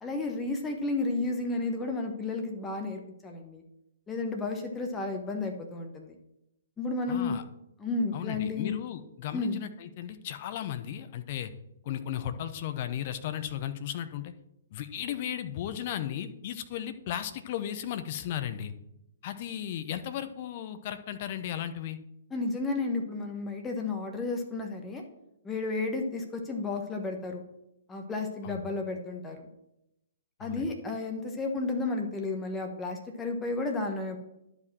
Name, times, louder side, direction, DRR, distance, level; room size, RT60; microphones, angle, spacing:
voice 1, 0.0-3.6 4.1-6.2 6.8-7.3 7.8-8.7 9.3-9.6 22.3-25.0 25.4-27.4 27.9-29.5 30.4-34.2, left 3 dB, 10° left, 3 dB, 1.1 m, -32 dB
voice 2, 7.1-7.4 8.1-11.5 11.8-14.3 14.7-18.7 19.2-22.0 28.4-28.7 30.4-30.7, left 10 dB, 40° left, 10 dB, 0.8 m, -35 dB
11.0 x 5.1 x 6.1 m, 0.85 s
figure-of-eight pair, 120°, 0 cm